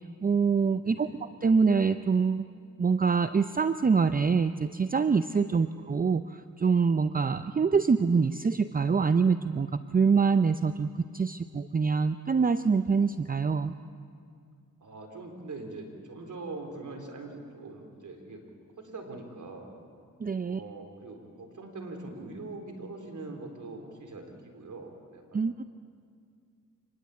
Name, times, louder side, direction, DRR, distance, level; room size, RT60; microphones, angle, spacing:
voice 1, 0.0-1.1 1.4-2.5 2.8-13.7 20.2-20.6 25.3-25.6, right 5 dB, 25° right, 11 dB, 0.6 m, -25 dB
voice 2, 0.8-1.2 5.5-5.8 14.8-18.4 18.8-19.8 20.4-25.4, right 3 dB, 65° right, 3 dB, 4.1 m, -43 dB
25.0 x 20.5 x 8.4 m, 2.2 s
cardioid pair, 85°, 33 cm